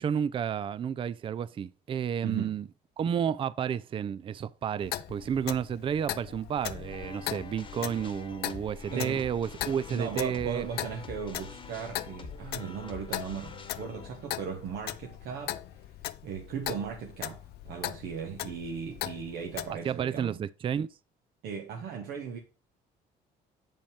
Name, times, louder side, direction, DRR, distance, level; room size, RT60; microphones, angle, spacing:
voice 1, 0.0-2.7 3.0-10.7 19.8-20.9, right 8 dB, 30° right, 0.3 m, -31 dB
voice 2, 2.2-2.6 8.9-9.3 9.9-15.6 16.2-20.4 21.4-22.4, right 6 dB, 75° right, 1.2 m, -37 dB
Clock, 4.8-19.7, left 14 dB, 70° left, 0.5 m, -39 dB
sound 1, 6.7-15.8, left 4 dB, 30° left, 1.1 m, -47 dB
7.2 x 5.3 x 3.3 m
cardioid pair, 110°, 17 cm